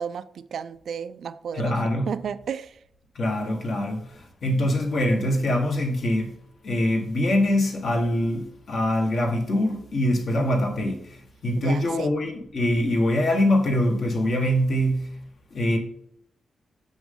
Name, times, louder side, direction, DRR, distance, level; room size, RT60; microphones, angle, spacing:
voice 1, 0.0-2.8 11.6-12.1, right 7 dB, 65° right, 0.4 m, -33 dB
voice 2, 1.6-2.1 3.1-6.3 6.6-15.1 15.5-15.8, left 1 dB, 50° left, 1.5 m, -24 dB
6.4 x 6.0 x 3.7 m
wide cardioid pair, 170°, 0 cm